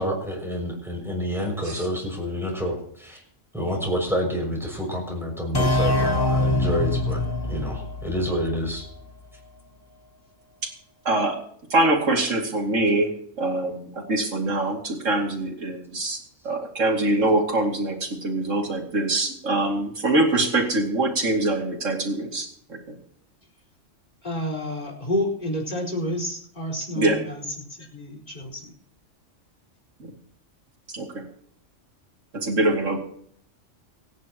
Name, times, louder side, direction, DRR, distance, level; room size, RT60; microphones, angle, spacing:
voice 1, 0.0-3.2 3.5-8.8, equal, ahead, -1 dB, 6.3 m, -28 dB
sound 1, 5.5-9.1, left 2 dB, 20° left, 0.9 m, -24 dB
voice 2, 11.0-11.4 11.7-16.2 16.4-23.0 27.0-27.2 30.0-30.1 30.9-31.1 32.3-33.0, right 2 dB, 85° right, 2 dB, 2.9 m, -24 dB
voice 3, 24.2-27.4 27.9-28.6, left 1 dB, 35° left, 1 dB, 5.1 m, -29 dB
26.0 x 10.5 x 3.0 m, 0.63 s
omnidirectional pair, 1.3 m